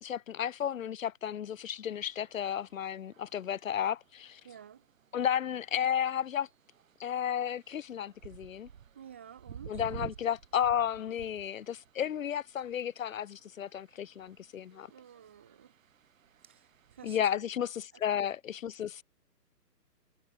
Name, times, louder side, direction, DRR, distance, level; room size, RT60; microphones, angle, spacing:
voice 1, 0.0-4.4 5.1-6.5 7.0-8.7 9.7-14.9 17.0-19.0, left 9 dB, 50° left, 0.8 m, -33 dB
sound 1, 1.6-17.2, right 8 dB, 50° right, 4.5 m, -53 dB
voice 2, 4.4-4.8 8.9-10.0 14.7-15.7 16.4-17.2, right 9 dB, 10° right, 0.7 m, -52 dB
hypercardioid pair, 160°, 50 cm